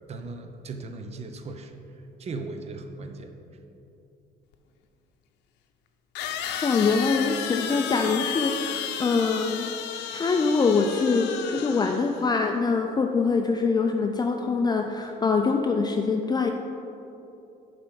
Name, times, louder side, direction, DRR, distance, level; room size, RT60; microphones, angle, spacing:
voice 1, 0.1-1.8 2.2-3.3, right 3 dB, 40° right, 6 dB, 0.8 m, -37 dB
sound 1, 4.5-4.6 6.2-12.3, left 9 dB, 85° left, 0.6 m, -33 dB
voice 2, 6.6-9.7 10.1-16.5, left 4 dB, 25° left, 3 dB, 0.4 m, -24 dB
7.2 x 5.2 x 6.4 m, 2.9 s
cardioid pair, 110°, 17 cm